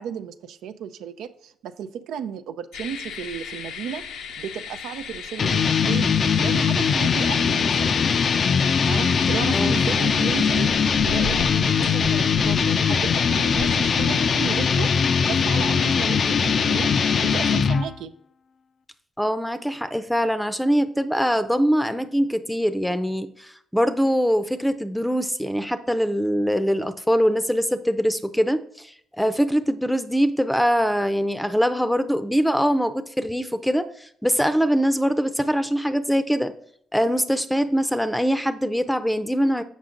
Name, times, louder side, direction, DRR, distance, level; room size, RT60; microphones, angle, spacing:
voice 1, 0.0-6.1 6.4-8.0 8.9-10.7 11.0-16.9 17.2-18.1, right 8 dB, 85° right, 9 dB, 0.5 m, -34 dB
sound 1, 2.7-14.9, left 6 dB, 85° left, 0.7 m, -37 dB
sound 2, 5.4-17.9, left 6 dB, 50° left, 0.4 m, -21 dB
voice 2, 9.5-10.2 19.2-36.5 36.9-39.6, equal, 5° left, 11 dB, 0.6 m, -23 dB
7.2 x 5.3 x 3.8 m, 0.67 s
cardioid pair, 90°, 0 cm